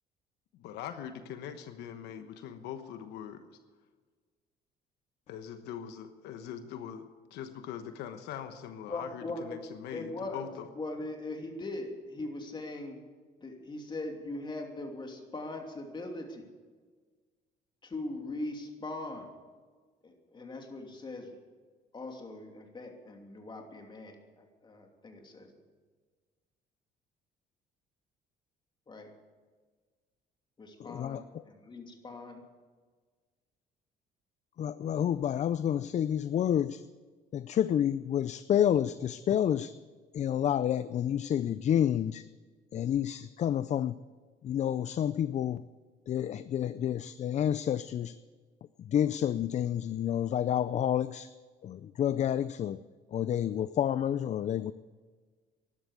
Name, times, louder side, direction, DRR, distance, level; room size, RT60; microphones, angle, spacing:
voice 1, 0.6-3.5 5.3-10.7, left 9 dB, 85° left, 9 dB, 1.2 m, -42 dB
voice 2, 8.9-9.6 9.9-10.4 10.7-13.0 13.4-16.5 17.8-19.3 20.0-21.3 21.9-25.5 28.9-29.1 30.6-32.4, left 2 dB, 25° left, 3 dB, 2.9 m, -40 dB
voice 3, 30.8-31.2 34.6-36.8 37.3-39.7 40.1-42.3 42.7-44.0 44.4-45.6 46.1-48.2 48.8-51.3 51.6-52.8 53.1-54.7, left 10 dB, 45° left, 15 dB, 0.5 m, -29 dB
13.0 x 11.5 x 8.3 m, 1.5 s
cardioid pair, 110°, 17 cm